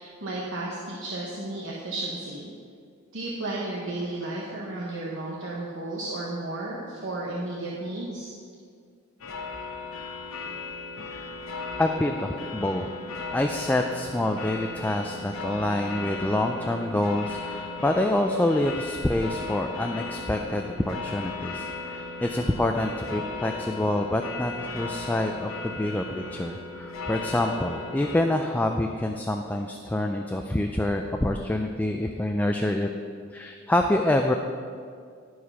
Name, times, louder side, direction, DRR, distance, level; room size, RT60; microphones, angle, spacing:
voice 1, 0.0-2.5 3.1-8.3, right 2 dB, 65° right, -5 dB, 1.2 m, -33 dB
sound 1, 9.2-28.2, left 3 dB, 80° left, 0.9 m, -36 dB
voice 2, 11.8-12.9 13.3-32.9 33.3-34.3, left 1 dB, 10° left, 3 dB, 0.3 m, -26 dB
12.0 x 4.8 x 5.5 m, 2.2 s
head